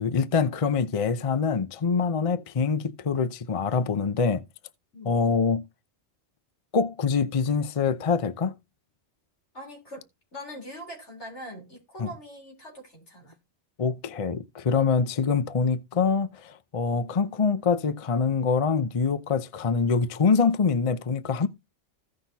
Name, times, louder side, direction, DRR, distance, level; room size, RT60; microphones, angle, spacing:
voice 1, 0.0-4.4 5.0-5.6 6.7-8.5 12.0-12.1 13.8-21.5, left 5 dB, 35° left, 0.6 m, -25 dB
voice 2, 9.5-10.0 10.3-13.4, equal, 85° left, 4.1 m, -42 dB
16.0 x 5.8 x 2.8 m
omnidirectional pair, 1.2 m